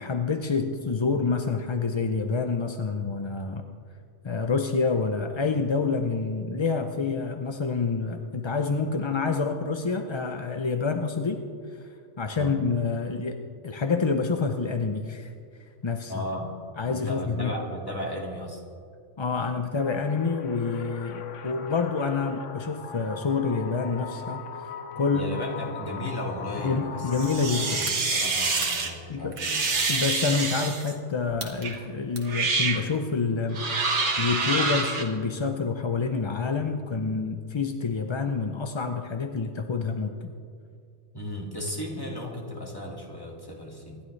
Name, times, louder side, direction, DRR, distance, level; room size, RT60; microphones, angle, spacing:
voice 1, 0.0-3.6 4.2-11.4 12.2-15.3 15.8-16.1 16.8-17.5 19.2-24.7 25.0-25.3 26.6-27.8 29.1-29.4 29.9-33.6 34.2-40.3, left 4 dB, 35° left, 6 dB, 0.5 m, -27 dB
voice 2, 16.1-16.6 16.9-18.6 25.1-27.1 27.4-29.6 41.1-44.0, left 1 dB, 20° left, -1 dB, 2.1 m, -35 dB
sound 1, 19.8-27.8, left 6 dB, 85° left, 1.2 m, -39 dB
sound 2, 27.1-28.9 29.4-30.9 31.6-31.8 32.2-32.8 33.5-35.0, right 3 dB, 75° right, 1.7 m, -27 dB
sound 3, 27.2-27.3 27.8-28.0 28.6-28.7 29.3-29.5 30.1-30.2 30.8-31.0 31.3-31.7 32.2-32.4, right 3 dB, 50° right, 1.8 m, -37 dB
25.5 x 11.5 x 3.2 m, 2.4 s
omnidirectional pair, 1.2 m